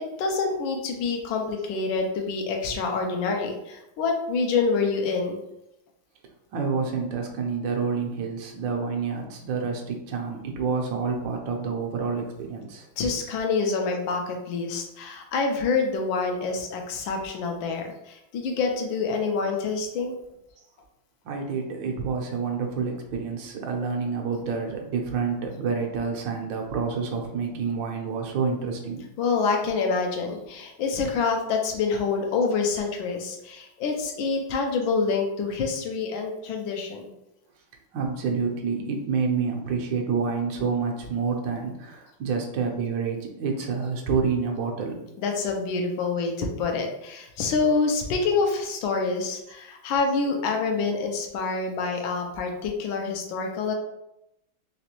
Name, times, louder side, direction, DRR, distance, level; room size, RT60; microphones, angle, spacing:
voice 1, 0.0-5.4 13.0-20.1 29.2-37.1 45.2-53.7, left 4 dB, 75° left, 3 dB, 1.4 m, -27 dB
voice 2, 6.5-12.9 21.2-29.0 37.9-45.0, right 5 dB, 70° right, 2 dB, 1.3 m, -28 dB
4.0 x 3.1 x 2.9 m, 0.87 s
omnidirectional pair, 2.2 m